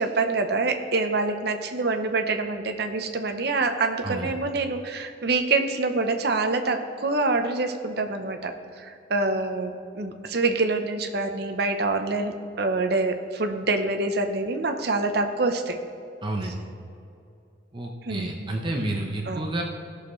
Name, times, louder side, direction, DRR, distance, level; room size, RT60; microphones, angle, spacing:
voice 1, 0.0-15.8 16.4-16.5 18.0-18.5 19.3-19.5, right 3 dB, 60° right, 6 dB, 0.8 m, -26 dB
voice 2, 16.2-16.5 17.7-19.6, right 1 dB, 25° right, 0 dB, 0.8 m, -30 dB
16.5 x 6.6 x 3.2 m, 2.6 s
head